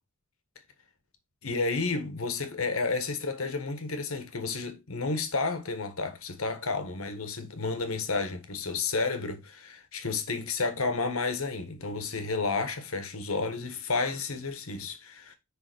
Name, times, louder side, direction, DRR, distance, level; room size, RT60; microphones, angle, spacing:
voice 1, 1.4-15.4, left 4 dB, 80° left, 1.6 m, -31 dB
9.8 x 3.6 x 5.1 m
head